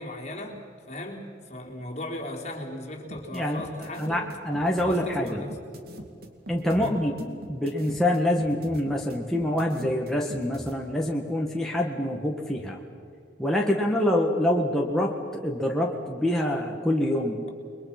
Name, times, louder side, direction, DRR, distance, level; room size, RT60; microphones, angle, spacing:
voice 1, 0.0-4.3 4.8-5.6 6.8-7.0, left 1 dB, 35° left, -1 dB, 3.8 m, -37 dB
sound 1, 3.1-10.7, right 1 dB, 55° right, 2.6 m, -42 dB
voice 2, 3.3-3.6 4.0-5.4 6.5-12.8 13.4-17.5, left 1 dB, ahead, -1 dB, 1.7 m, -26 dB
29.5 x 22.0 x 6.0 m, 2.3 s
head